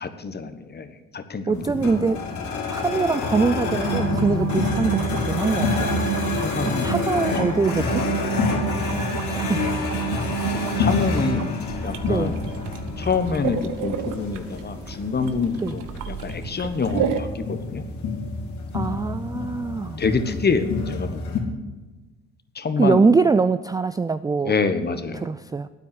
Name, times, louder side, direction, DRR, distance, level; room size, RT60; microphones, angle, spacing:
voice 1, 0.0-2.1 6.4-7.3 8.6-9.2 10.4-11.5 11.8-12.4 13.0-17.8 20.0-21.4 22.5-23.0 24.4-25.3, left 4 dB, 30° left, 10 dB, 1.3 m, -27 dB
sound 1, 1.5-21.4, left 4 dB, 60° left, 2.7 m, -28 dB
voice 2, 1.5-2.3 2.7-5.9 6.6-8.0 9.3-9.6 10.1-10.3 12.1-12.3 15.6-15.7 18.7-20.0 22.8-24.5 25.2-25.7, right 4 dB, 10° right, 12 dB, 0.3 m, -23 dB
sound 2, 3.5-11.5, right 14 dB, 55° right, 0.6 m, -29 dB
sound 3, 11.7-17.2, right 8 dB, 75° right, 1.0 m, -32 dB
9.2 x 8.1 x 8.7 m, 1.2 s
supercardioid pair, 65°, 32 cm